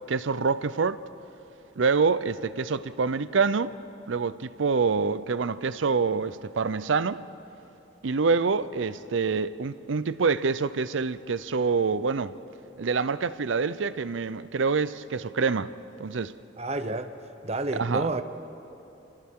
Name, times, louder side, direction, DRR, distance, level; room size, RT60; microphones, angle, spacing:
voice 1, 0.1-1.0 1.8-3.7 4.1-7.2 8.0-12.3 12.8-15.7 16.0-16.3 17.8-18.1, right 4 dB, 80° right, 0.6 m, -26 dB
voice 2, 16.6-17.1 17.4-18.2, right 2 dB, 35° right, 0.8 m, -30 dB
28.5 x 28.0 x 3.7 m
head